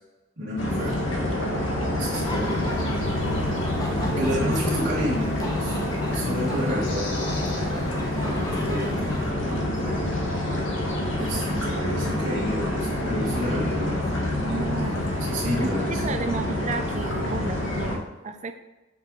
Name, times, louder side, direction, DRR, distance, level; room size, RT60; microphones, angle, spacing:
voice 1, 0.4-1.0 1.8-2.8 4.2-7.1 8.2-10.0 11.1-14.3 15.2-16.1, equal, 60° right, -10 dB, 1.7 m, -30 dB
sound 1, 0.6-18.0, left 1 dB, 85° left, 1.3 m, -27 dB
sound 2, 2.1-9.3, left 2 dB, 20° left, 0.9 m, -39 dB
sound 3, 3.8-16.8, left 2 dB, 55° left, 1.4 m, -36 dB
voice 2, 4.0-4.6 6.5-6.9 14.5-18.5, right 3 dB, 35° right, 8 dB, 0.5 m, -33 dB
6.8 x 5.8 x 3.1 m, 1.1 s
head